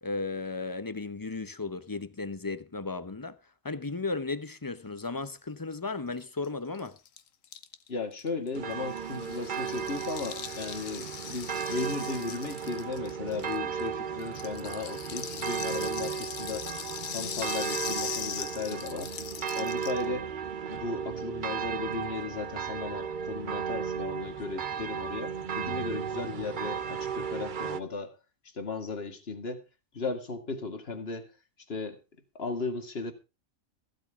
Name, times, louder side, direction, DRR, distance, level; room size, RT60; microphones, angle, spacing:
voice 1, 0.0-3.4 3.6-7.0, left 3 dB, 20° left, 0.6 m, -35 dB
Rattle (instrument), 6.2-6.3 6.4-6.5 6.7-13.9 14.2-20.1, left 8 dB, 75° left, 1.4 m, -40 dB
voice 2, 7.9-16.7 17.1-19.1 19.5-20.3 20.7-28.1 28.5-29.6 29.9-31.3 31.7-32.0 32.3-33.1, left 4 dB, 45° left, 2.3 m, -36 dB
sound 1, 8.5-27.8, right 7 dB, 45° right, 0.8 m, -35 dB
15.0 x 12.5 x 3.6 m
omnidirectional pair, 1.4 m